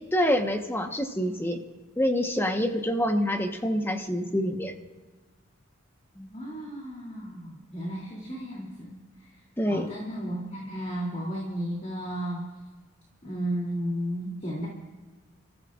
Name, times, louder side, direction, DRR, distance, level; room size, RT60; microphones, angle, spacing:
voice 1, 0.1-1.6 2.0-4.7 9.6-9.9, equal, 10° left, 5 dB, 1.2 m, -26 dB
voice 2, 6.1-9.3 9.7-12.5 13.2-14.7, equal, 35° left, -3 dB, 3.0 m, -34 dB
29.5 x 14.5 x 2.5 m, 1.3 s
head